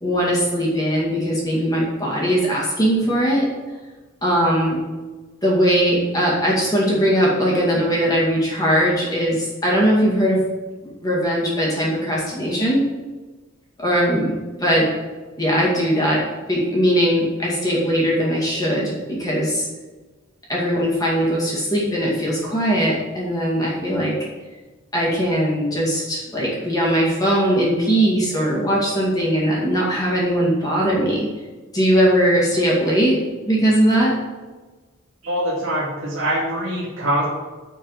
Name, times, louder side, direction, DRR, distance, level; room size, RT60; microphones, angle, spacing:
voice 1, 0.0-3.5 4.2-4.8 5.4-10.4 11.0-12.8 13.8-14.9 15.4-16.2 16.5-19.7 20.5-24.1 24.9-31.3 31.7-33.2 33.5-34.1, equal, 20° left, -5 dB, 2.2 m, -20 dB
voice 2, 35.2-37.3, right 1 dB, 80° right, -6 dB, 2.3 m, -23 dB
6.8 x 6.2 x 7.3 m, 1.3 s
head